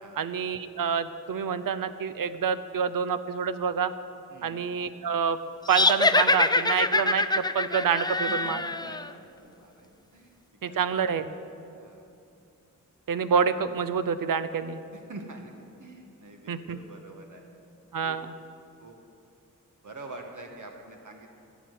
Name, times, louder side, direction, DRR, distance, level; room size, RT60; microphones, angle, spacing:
voice 1, 0.2-3.9 4.4-5.4 5.7-8.7 10.6-11.3 13.1-14.8 16.5-16.8 17.9-18.3, right 6 dB, 90° right, 12 dB, 0.7 m, -27 dB
sound 1, 5.7-9.1, left 2 dB, 15° left, 0.4 m, -24 dB
voice 2, 8.4-10.3 10.7-11.0 11.7-12.1 14.9-17.4 18.0-18.2 18.8-19.0 19.8-21.3, right 2 dB, 70° right, 2 dB, 1.4 m, -46 dB
16.0 x 6.2 x 9.4 m, 2.6 s
wide cardioid pair, 95°, 32 cm